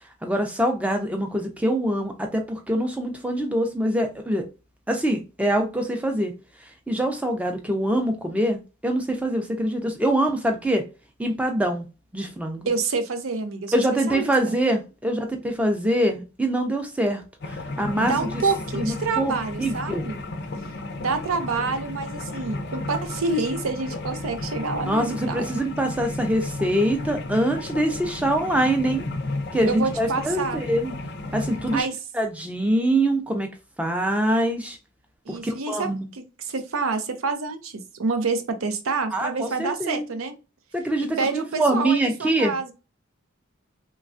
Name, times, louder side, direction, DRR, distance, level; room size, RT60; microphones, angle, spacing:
voice 1, 0.2-4.4 4.9-6.3 6.9-10.8 11.2-11.8 12.1-12.6 13.7-17.2 17.5-18.4 18.7-19.3 19.6-20.1 24.8-29.0 29.5-30.9 31.3-31.9 32.1-33.5 33.8-34.8 35.3-36.1 39.1-40.1 40.7-42.5, right 1 dB, 5° right, 0.4 m, -24 dB
voice 2, 12.7-13.7 14.1-14.5 18.0-20.2 21.0-25.6 29.7-30.6 31.7-32.0 35.3-40.4 41.2-42.7, right 4 dB, 80° right, 0.5 m, -27 dB
sound 1, 17.4-31.8, left 2 dB, 50° left, 0.4 m, -33 dB
3.1 x 2.3 x 2.5 m
head